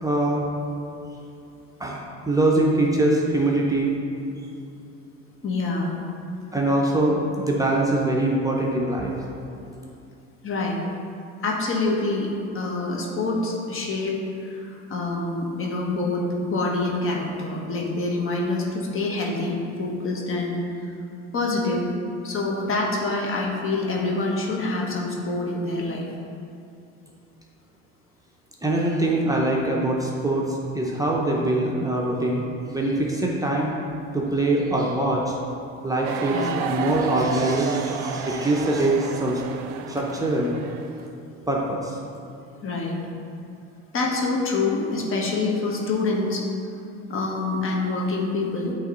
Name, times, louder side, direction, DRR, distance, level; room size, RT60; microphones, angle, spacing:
voice 1, 0.0-0.5 1.8-2.0 2.3-3.9 6.5-9.1 28.6-33.7 34.1-35.4 35.8-39.4 39.9-40.5 41.5-42.0, right 1 dB, 10° right, -3 dB, 0.7 m, -23 dB
voice 2, 5.4-5.9 10.4-10.8 11.4-12.3 12.5-20.8 21.3-21.8 22.2-26.1 36.3-36.5 42.6-43.0 43.9-46.4 47.1-48.7, left 3 dB, 40° left, -1 dB, 1.2 m, -26 dB
sound 1, 36.0-41.0, right 7 dB, 85° right, 0.5 m, -31 dB
8.4 x 3.1 x 3.9 m, 2.7 s
supercardioid pair, 90°, 31 cm